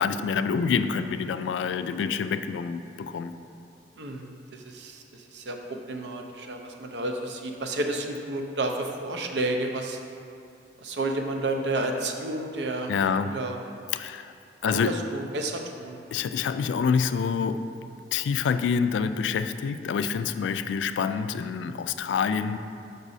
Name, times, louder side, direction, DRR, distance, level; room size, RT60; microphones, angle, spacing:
voice 1, 0.0-3.3 12.9-13.4 13.9-14.3 14.6-15.0 16.1-17.7 18.1-22.6, left 6 dB, 85° left, 11 dB, 0.3 m, -27 dB
voice 2, 4.0-10.0 10.8-13.6 14.6-16.0, right 2 dB, 65° right, 3 dB, 0.6 m, -31 dB
6.1 x 5.3 x 4.0 m, 2.6 s
head